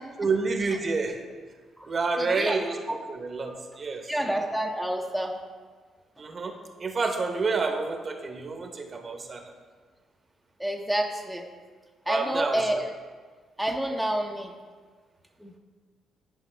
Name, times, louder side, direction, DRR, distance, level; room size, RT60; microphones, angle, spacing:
voice 1, 0.2-1.3 1.9-4.1 6.2-6.5 6.8-9.5 12.1-12.8, right 4 dB, 40° right, 4 dB, 0.9 m, -29 dB
voice 2, 2.2-2.6 2.9-3.0 4.1-5.4 10.6-11.4 12.1-12.9 13.6-14.5 15.4-15.5, right 1 dB, ahead, 0 dB, 0.7 m, -28 dB
10.0 x 5.1 x 3.3 m, 1.5 s
cardioid pair, 90°, 0 cm